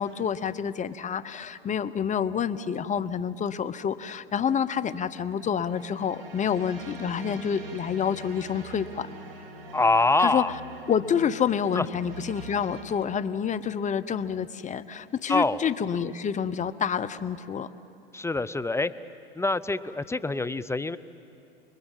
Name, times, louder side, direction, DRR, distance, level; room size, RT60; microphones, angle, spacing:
voice 1, 0.0-9.1 10.2-10.4 10.9-17.7, left 7 dB, 25° left, 13 dB, 1.0 m, -28 dB
sound 1, 5.6-12.8, right 1 dB, 65° right, 4.7 m, -44 dB
voice 2, 9.7-10.5 11.8-11.9 15.3-15.6 18.1-18.9 19.4-21.0, left 2 dB, 10° left, 13 dB, 0.6 m, -25 dB
29.0 x 20.5 x 7.5 m, 2.7 s
hypercardioid pair, 95°, 30 cm